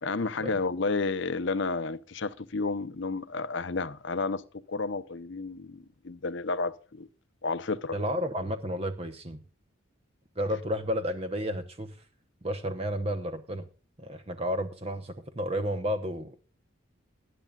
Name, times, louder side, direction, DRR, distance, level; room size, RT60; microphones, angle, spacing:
voice 1, 0.0-4.4 4.7-7.1 7.4-8.0, left 3 dB, 55° left, 0.7 m, -31 dB
voice 2, 7.9-9.4 10.4-12.0 12.4-13.7 14.0-16.4, equal, 30° right, 0.9 m, -32 dB
19.5 x 10.5 x 2.4 m
head